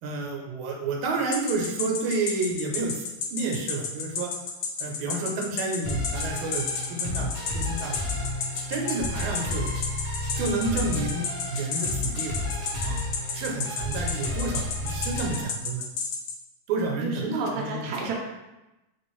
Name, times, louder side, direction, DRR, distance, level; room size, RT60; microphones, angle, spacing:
voice 1, 0.0-3.0 3.3-4.3 4.8-8.1 8.7-9.7 10.4-12.3 12.6-13.0 13.3-15.9 16.7-17.9, right 3 dB, 80° right, 1 dB, 1.4 m, -30 dB
sound 1, 1.3-16.3, left 6 dB, 90° left, 1.4 m, -31 dB
sound 2, 5.8-15.4, left 2 dB, 45° left, 0.8 m, -32 dB
voice 2, 17.0-18.1, right 4 dB, 65° right, -1 dB, 1.0 m, -31 dB
3.2 x 3.0 x 3.0 m, 1.0 s
omnidirectional pair, 2.2 m